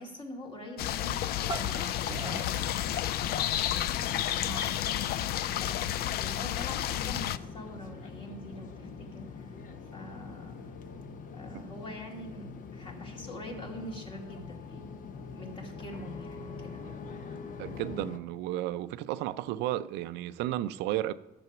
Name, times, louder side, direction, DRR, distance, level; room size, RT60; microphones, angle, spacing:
voice 1, 0.0-2.6 3.7-9.4 9.9-10.6 11.3-14.9 15.3-16.8, left 1 dB, 30° left, 2.4 m, -44 dB
sound 1, 0.8-7.4, left 12 dB, 70° left, 0.4 m, -31 dB
sound 2, 1.4-3.8, right 5 dB, 25° right, 0.7 m, -42 dB
sound 3, 7.2-18.2, left 5 dB, 50° left, 0.9 m, -44 dB
voice 2, 17.6-21.1, right 14 dB, 85° right, 0.4 m, -33 dB
11.0 x 6.9 x 5.9 m
cardioid pair, 110°, 17 cm